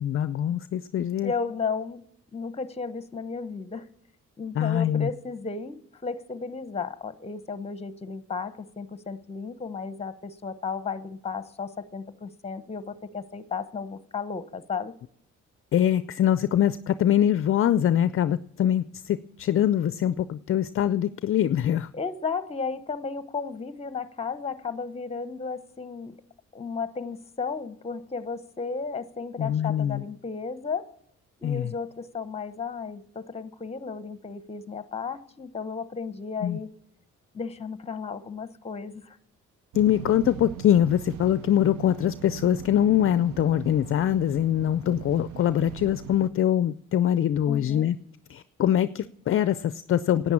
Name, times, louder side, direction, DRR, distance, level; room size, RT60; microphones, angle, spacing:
voice 1, 0.0-1.3 4.6-5.1 15.7-21.9 29.4-30.0 31.4-31.7 36.4-36.6 39.7-48.0 48.3-50.3, left 10 dB, 45° left, 0.4 m, -23 dB
voice 2, 1.2-2.0 2.3-3.9 4.4-14.9 21.9-26.2 26.5-31.0 31.4-36.7 37.3-39.2 47.5-47.9, left 5 dB, 20° left, 0.9 m, -34 dB
sound 1, 39.7-46.3, right 12 dB, 75° right, 0.5 m, -40 dB
10.5 x 9.1 x 8.5 m
cardioid pair, 90°, 30 cm